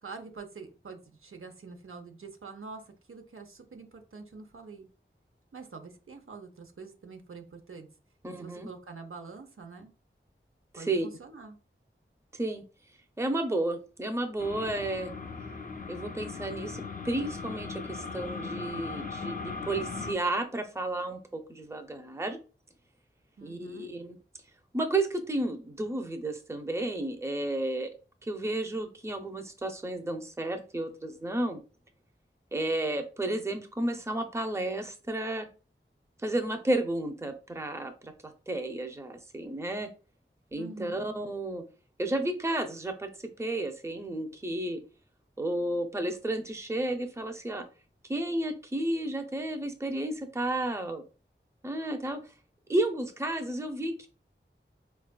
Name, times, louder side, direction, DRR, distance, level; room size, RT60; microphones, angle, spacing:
voice 1, 0.0-4.9 5.5-7.9 8.4-9.9 10.8-11.6 23.4-23.9 40.6-41.0, right 4 dB, 80° right, 5 dB, 0.6 m, -45 dB
voice 2, 8.2-8.7 10.7-11.1 12.3-12.6 13.2-15.1 15.9-22.4 23.4-24.2 24.7-27.9 28.2-31.6 32.5-35.5 36.2-38.1 38.5-39.9 40.5-41.6 42.0-44.8 45.4-47.6 48.1-51.0 51.6-52.2 52.7-54.1, right 1 dB, 15° right, 6 dB, 0.5 m, -32 dB
sound 1, 14.4-20.1, left 4 dB, 40° left, 0.4 m, -38 dB
4.2 x 2.3 x 2.3 m, 0.34 s
wide cardioid pair, 50°, 21 cm